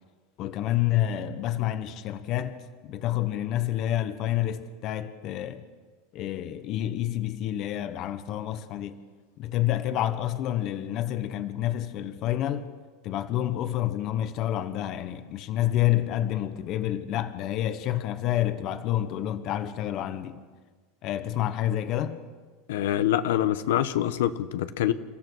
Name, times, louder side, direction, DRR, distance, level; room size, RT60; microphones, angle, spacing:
voice 1, 0.4-2.6 2.8-5.6 6.1-9.0 9.4-12.7 13.0-20.4 21.0-22.2, left 12 dB, 35° left, 1.0 m, -28 dB
voice 2, 22.7-24.9, left 12 dB, 85° left, 1.0 m, -25 dB
30.0 x 14.5 x 6.3 m
supercardioid pair, 175°, 0 cm